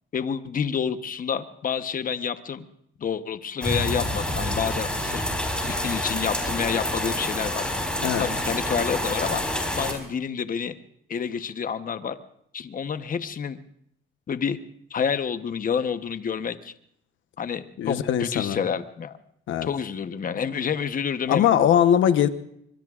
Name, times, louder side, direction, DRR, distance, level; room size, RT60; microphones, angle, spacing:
voice 1, 0.1-2.6 3.0-5.3 5.6-7.7 8.0-9.4 9.8-10.7 11.1-12.2 12.5-13.6 14.3-14.6 14.9-16.7 17.4-19.2 19.6-21.5, left 7 dB, 45° left, 10 dB, 1.0 m, -28 dB
sound 1, 3.6-9.9, left 1 dB, 5° left, 4.6 m, -28 dB
voice 2, 17.8-18.6 19.5-19.7 21.3-22.3, left 9 dB, 75° left, 10 dB, 1.1 m, -20 dB
25.0 x 23.0 x 2.5 m, 0.72 s
cardioid pair, 90°, 20 cm